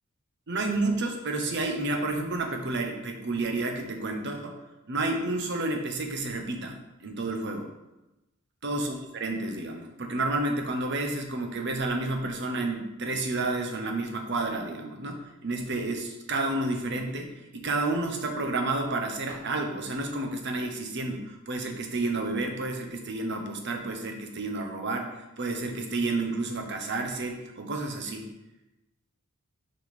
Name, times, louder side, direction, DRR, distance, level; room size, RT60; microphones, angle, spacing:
voice 1, 0.5-4.6 4.9-7.7 8.6-17.3 17.5-25.1 25.4-28.3, right 2 dB, 55° right, 4 dB, 1.0 m, -30 dB
6.6 x 4.7 x 5.1 m, 0.98 s
head